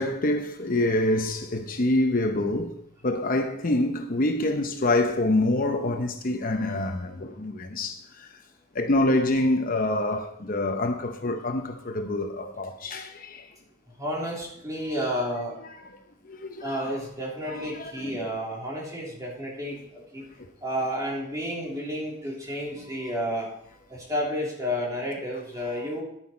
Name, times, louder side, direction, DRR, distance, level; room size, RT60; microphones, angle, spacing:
voice 1, 0.0-2.7 3.0-8.3 8.7-13.5 16.3-17.0 17.5-18.1 23.0-23.1 25.8-25.9, left 1 dB, 45° left, 0.8 m, -26 dB
voice 2, 14.0-15.5 16.6-19.8 20.1-20.2 20.6-23.5 23.9-26.0, equal, 20° right, 3.3 m, -31 dB
10.5 x 9.9 x 4.4 m
head